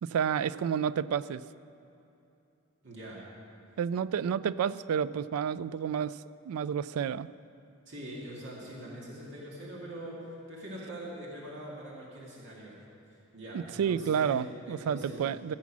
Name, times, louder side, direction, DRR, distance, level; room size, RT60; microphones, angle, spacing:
voice 1, 0.0-1.4 3.8-6.2 6.5-7.3 13.5-15.5, right 7 dB, 80° right, 17 dB, 0.3 m, -30 dB
voice 2, 2.8-3.3 7.9-12.8 13.3-14.4 14.6-15.2, right 1 dB, 60° right, -4 dB, 2.1 m, -43 dB
15.5 x 7.3 x 6.1 m, 2.8 s
head